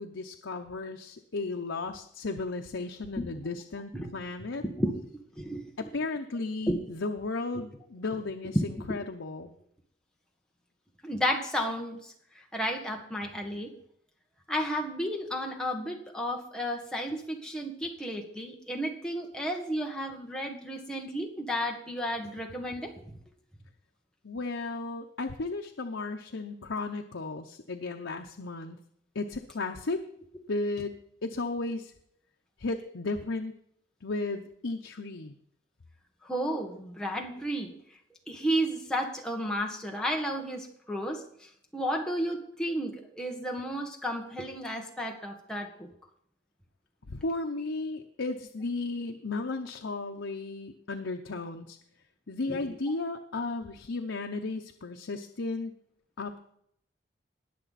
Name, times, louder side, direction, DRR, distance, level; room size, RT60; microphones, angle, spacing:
voice 1, 0.0-4.6 5.8-9.5 24.2-28.8 29.1-30.0 30.5-31.0 31.2-31.9 32.6-33.5 34.0-35.3 47.1-51.8 52.3-55.7 56.2-56.6, left 3 dB, 85° left, 4 dB, 0.8 m, -34 dB
voice 2, 4.6-5.0 5.3-5.9 6.7-6.8 8.5-8.6 11.0-12.1 12.5-13.7 14.5-23.1 36.2-37.7 38.3-41.2 41.7-45.9 52.5-52.8, equal, 5° left, 0 dB, 1.6 m, -32 dB
20.0 x 6.9 x 4.2 m, 0.69 s
head